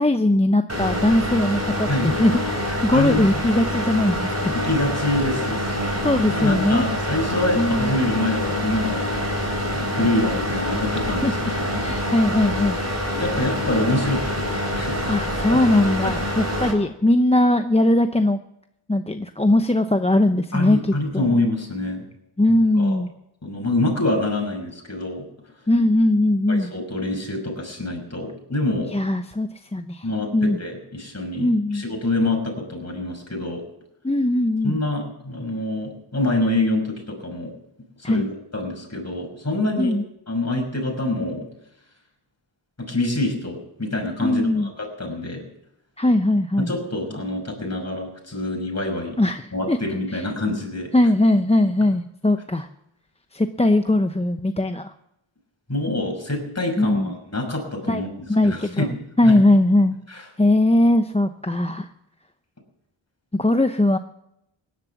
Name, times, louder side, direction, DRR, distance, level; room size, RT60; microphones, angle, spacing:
voice 1, 0.0-4.5 6.0-6.9 7.6-7.9 11.2-12.8 15.1-18.4 18.9-20.8 21.1-21.3 22.4-23.1 25.7-26.7 28.9-30.1 30.3-30.6 31.4-31.8 34.0-34.8 38.0-38.3 39.8-40.0 44.2-44.7 46.0-46.7 49.2-49.8 50.9-52.7 53.3-54.9 56.8-57.1 57.9-58.0 58.3-58.9 59.2-60.0 60.4-61.9 63.3-64.0, left 1 dB, 15° left, 7 dB, 0.7 m, -20 dB
sound 1, 0.7-16.7, equal, 30° right, 4.5 m, -26 dB
voice 2, 2.9-3.4 4.5-9.1 9.7-11.7 13.2-15.2 15.5-15.6 16.0-16.2 20.5-22.1 22.8-23.0 23.4-25.2 26.5-28.9 30.0-33.6 34.6-37.5 38.0-40.0 40.3-41.4 42.8-45.4 46.6-49.2 49.5-50.9 55.7-58.1 58.4-58.9 59.2-59.4 60.1-60.2, left 2 dB, 30° left, 1 dB, 6.1 m, -26 dB
17.5 x 11.0 x 7.2 m, 0.81 s
wide cardioid pair, 60°, 49 cm